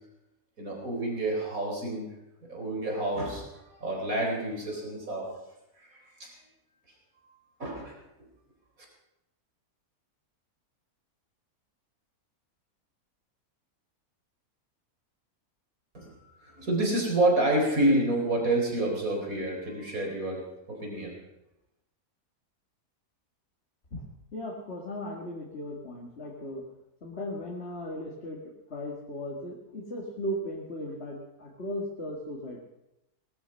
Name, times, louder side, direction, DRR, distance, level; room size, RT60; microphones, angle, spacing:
voice 1, 0.6-2.1 2.5-5.3 5.8-6.3 7.2-8.0 15.9-20.4 20.7-21.1, right 1 dB, 70° right, 0 dB, 4.8 m, -29 dB
voice 2, 24.3-26.6 27.0-32.6, left 1 dB, 45° left, -1 dB, 2.2 m, -37 dB
19.5 x 12.5 x 5.6 m, 0.92 s
omnidirectional pair, 1.5 m